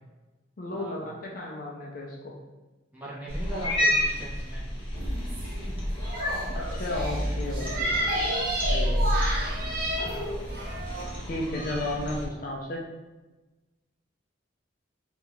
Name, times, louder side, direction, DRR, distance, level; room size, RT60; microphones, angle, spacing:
voice 1, 0.6-2.3 6.5-8.3 8.7-9.0 11.3-12.8, left 1 dB, 45° left, -1 dB, 0.4 m, -34 dB
voice 2, 2.9-4.7 8.8-9.4 10.0-10.1, right 1 dB, 10° right, -8 dB, 0.8 m, -40 dB
Cat, 3.3-12.3, equal, 30° left, 0.8 m, -30 dB
sound 1, 5.0-11.1, right 1 dB, 50° right, 0.5 m, -31 dB
2.7 x 2.3 x 3.1 m, 1.1 s
head